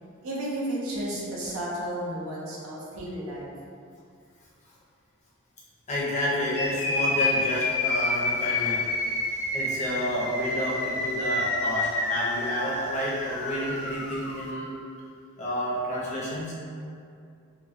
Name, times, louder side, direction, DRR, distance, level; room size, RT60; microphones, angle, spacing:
voice 1, 0.2-3.5, right 1 dB, 80° right, -5 dB, 0.6 m, -32 dB
voice 2, 5.9-8.8 9.5-14.7 15.4-16.5, equal, 35° left, -7 dB, 0.6 m, -30 dB
sound 1, 6.5-14.5, left 2 dB, 85° left, 0.4 m, -29 dB
3.0 x 2.1 x 2.6 m, 2.4 s
head